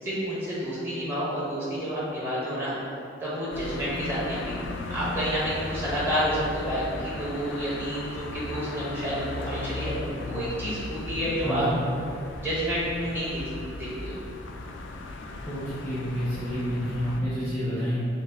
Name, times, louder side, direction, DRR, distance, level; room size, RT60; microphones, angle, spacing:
voice 1, 0.0-2.8 3.2-11.6 12.4-13.4 13.7-14.1, equal, 10° right, -10 dB, 1.1 m, -30 dB
sound 1, 3.5-17.2, left 2 dB, 70° left, 0.3 m, -37 dB
voice 2, 11.4-11.8 15.4-18.0, equal, 15° left, -11 dB, 0.8 m, -29 dB
5.5 x 2.0 x 3.5 m, 2.4 s
head